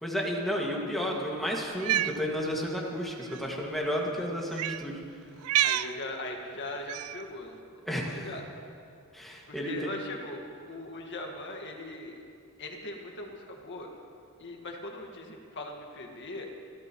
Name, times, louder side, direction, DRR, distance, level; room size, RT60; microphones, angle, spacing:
voice 1, 0.0-5.0 7.9-8.3 9.1-9.9, equal, ahead, -3 dB, 2.0 m, -32 dB
Cat, 1.7-2.2 3.2-3.4 4.5-4.8 5.4-5.9 6.9-7.2, right 12 dB, 70° right, 0.4 m, -28 dB
voice 2, 5.6-7.6 8.1-8.4 9.5-10.4 10.7-12.2 12.6-13.9 14.4-16.5, left 2 dB, 55° left, 2 dB, 1.8 m, -40 dB
29.5 x 12.5 x 3.1 m, 2.5 s
head